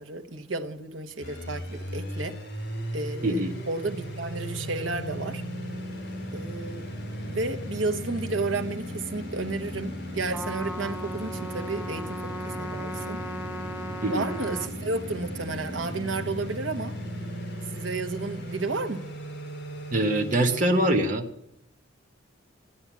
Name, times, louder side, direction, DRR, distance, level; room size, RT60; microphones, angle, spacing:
voice 1, 0.0-2.4 2.9-5.4 6.3-6.9 7.3-13.2 14.1-16.9 17.7-19.0, right 3 dB, 75° right, 6 dB, 1.2 m, -32 dB
sound 1, 1.2-20.9, equal, 55° left, 4.9 m, -36 dB
voice 2, 3.2-3.5 14.0-14.3 19.9-21.2, right 1 dB, 40° right, 2 dB, 1.2 m, -23 dB
Trumpet, 10.3-14.7, equal, 10° right, 1.0 m, -37 dB
14.5 x 9.7 x 7.3 m, 0.77 s
head